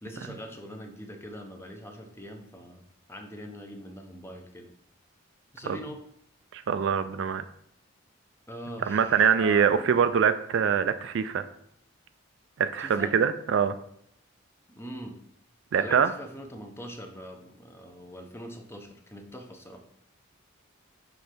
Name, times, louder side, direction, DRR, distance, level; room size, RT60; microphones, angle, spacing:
voice 1, 0.0-2.8 3.1-4.7 5.5-6.0 8.5-9.9 12.8-13.2 14.8-15.2 15.7-19.8, equal, 10° left, 4 dB, 0.7 m, -42 dB
voice 2, 6.5-7.4 8.9-11.4 12.6-13.7 15.7-16.1, right 7 dB, 60° right, 11 dB, 0.3 m, -24 dB
6.1 x 3.3 x 5.1 m, 0.71 s
head